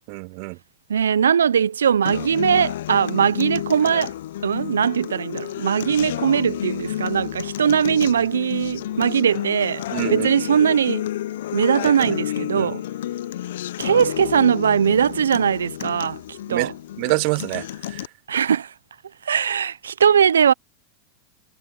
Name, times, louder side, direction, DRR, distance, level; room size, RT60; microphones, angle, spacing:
voice 1, 0.1-0.6 9.9-10.3 11.8-12.1 12.5-12.7 16.5-16.7 17.0-18.0, right 39 dB, 55° right, 0.3 m, -26 dB
voice 2, 0.9-4.1 4.4-9.8 10.1-11.0 11.5-12.8 13.8-16.7 18.3-18.7 19.2-20.5, right 8 dB, 80° right, 1.0 m, -20 dB
Acoustic guitar, 2.0-18.1, left 13 dB, 70° left, 0.9 m, -30 dB
hypercardioid pair, 90°, 0 cm